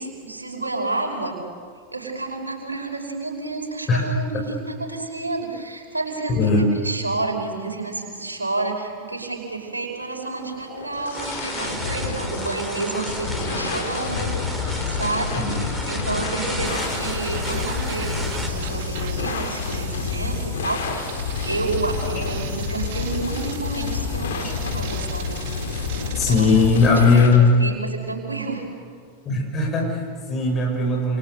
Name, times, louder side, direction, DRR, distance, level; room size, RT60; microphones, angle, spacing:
voice 1, 0.0-1.4 1.9-6.6 6.8-20.8 21.5-25.4 26.3-26.5 27.0-28.6, right 3 dB, 80° right, 1 dB, 5.4 m, -30 dB
voice 2, 6.3-6.6 15.4-15.6 26.2-27.5 29.2-31.2, left 4 dB, 25° left, 1 dB, 6.6 m, -18 dB
sound 1, 10.4-27.4, left 5 dB, 60° left, 3.8 m, -29 dB
sound 2, 11.1-18.5, right 1 dB, 5° right, 3.7 m, -33 dB
sound 3, 16.6-27.2, right 10 dB, 50° right, 2.1 m, -39 dB
29.5 x 28.5 x 6.7 m, 2.1 s
figure-of-eight pair, 90°, 0 cm